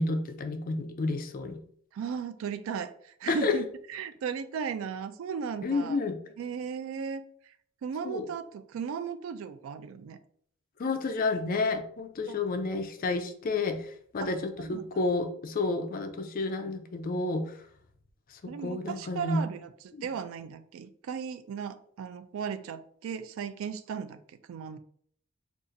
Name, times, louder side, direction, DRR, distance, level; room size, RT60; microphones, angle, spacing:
voice 1, 0.0-1.6 3.3-3.5 5.6-6.2 8.0-8.3 10.8-17.6 18.3-19.4 19.9-20.1, left 3 dB, 40° left, 7 dB, 0.4 m, -30 dB
voice 2, 1.9-3.6 3.9-6.0 6.4-7.2 7.8-10.2 12.3-12.4 14.2-14.3 14.6-15.0 18.5-24.2 24.5-24.8, right 6 dB, 75° right, 12 dB, 0.3 m, -36 dB
2.6 x 2.4 x 3.8 m, 0.62 s
head